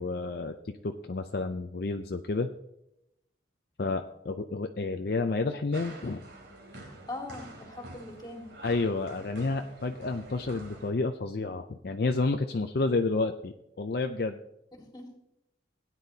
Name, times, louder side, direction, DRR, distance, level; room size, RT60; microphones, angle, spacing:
voice 1, 0.0-2.5 3.8-6.2 8.6-14.4, left 3 dB, 55° left, 6 dB, 0.5 m, -30 dB
sound 1, 5.7-10.9, right 2 dB, 75° right, 3.0 m, -47 dB
voice 2, 6.8-8.5 14.8-15.0, left 2 dB, 20° left, 1 dB, 2.1 m, -41 dB
17.0 x 9.9 x 2.8 m, 0.84 s
head